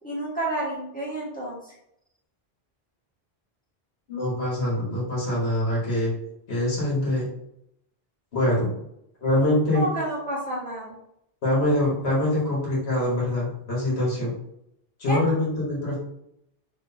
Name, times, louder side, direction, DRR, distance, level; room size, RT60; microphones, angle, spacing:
voice 1, 0.0-1.7 9.7-10.9 15.1-15.2, right 1 dB, 10° left, -7 dB, 1.4 m, -30 dB
voice 2, 4.1-6.1 6.5-7.3 8.3-8.7 9.2-9.9 11.4-14.3 15.0-16.0, left 1 dB, 75° left, -5 dB, 1.6 m, -24 dB
3.8 x 3.1 x 2.7 m, 0.78 s
omnidirectional pair, 1.1 m